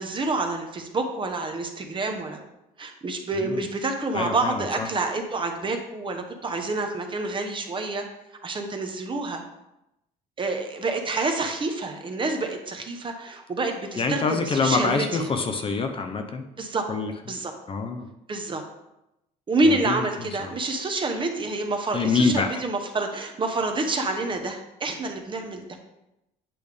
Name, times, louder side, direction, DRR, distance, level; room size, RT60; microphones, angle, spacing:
voice 1, 0.0-2.4 2.8-8.0 8.4-9.4 10.4-15.3 16.6-16.9 17.3-17.5 18.3-18.6 19.5-25.6, right 2 dB, 30° right, 4 dB, 0.8 m, -28 dB
voice 2, 4.1-4.9 14.0-16.4 16.9-17.1 17.7-18.1 19.6-20.0 20.4-20.5 21.9-22.6, left 4 dB, 30° left, 5 dB, 0.6 m, -25 dB
8.5 x 3.4 x 3.4 m, 0.89 s
cardioid pair, 110°, 17 cm